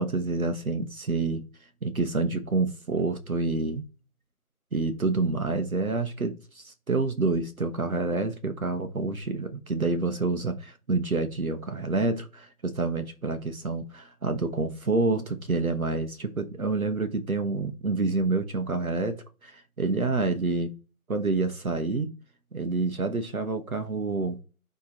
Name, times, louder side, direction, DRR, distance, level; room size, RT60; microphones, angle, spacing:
voice 1, 0.0-1.4 1.8-3.8 4.7-20.7 21.1-22.1 22.5-24.4, right 3 dB, 70° right, 1.3 m, -28 dB
9.6 x 3.5 x 2.9 m
figure-of-eight pair, 175°, 44 cm